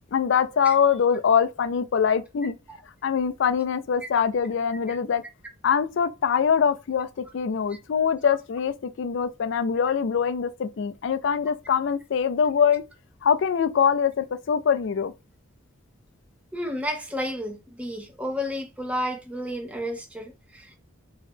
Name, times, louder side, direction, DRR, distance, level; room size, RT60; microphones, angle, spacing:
voice 1, 0.1-2.5 3.0-5.2 5.6-7.1 7.3-12.8 13.2-15.1, left 7 dB, 60° left, 0.3 m, -23 dB
voice 2, 16.5-20.8, equal, 5° right, 0.6 m, -32 dB
3.0 x 2.7 x 3.4 m
head